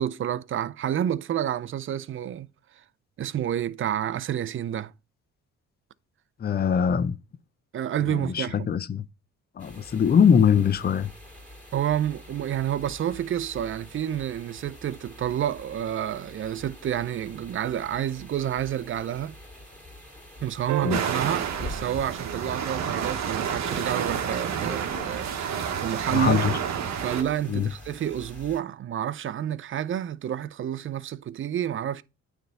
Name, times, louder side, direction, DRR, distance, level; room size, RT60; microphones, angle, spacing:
voice 1, 0.0-2.5 2.7-2.8 3.2-4.9 7.7-8.7 11.7-19.4 20.4-26.4 27.0-32.0, right 10 dB, 45° right, 0.5 m, -29 dB
voice 2, 6.4-7.2 8.1-9.0 9.6-11.1 20.8-21.0 26.1-26.5 27.5-27.7, left 7 dB, 30° left, 0.6 m, -22 dB
sound 1, 9.6-28.6, left 1 dB, 5° left, 2.6 m, -45 dB
sound 2, 20.7-23.2 25.4-25.5, right 13 dB, 85° right, 0.6 m, -36 dB
sound 3, 20.9-27.2, right 7 dB, 65° right, 1.2 m, -30 dB
9.1 x 3.5 x 5.4 m
cardioid pair, 90°, 30 cm